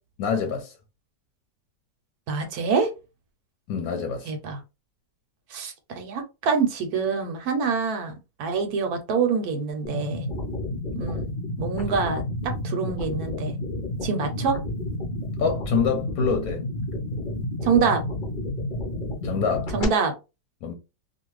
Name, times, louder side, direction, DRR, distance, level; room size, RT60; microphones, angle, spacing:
voice 1, 0.2-0.7 3.7-4.3 15.4-16.6 19.2-19.7 20.6-20.7, left 5 dB, 65° left, 1.0 m, -26 dB
voice 2, 2.3-2.9 4.3-4.6 5.5-10.3 10.9-11.3 11.6-13.6 14.0-14.6 17.6-18.0 19.7-20.1, right 5 dB, 70° right, 1.1 m, -26 dB
sound 1, 9.8-19.8, left 1 dB, 50° left, 0.6 m, -30 dB
2.7 x 2.5 x 3.1 m
omnidirectional pair, 1.8 m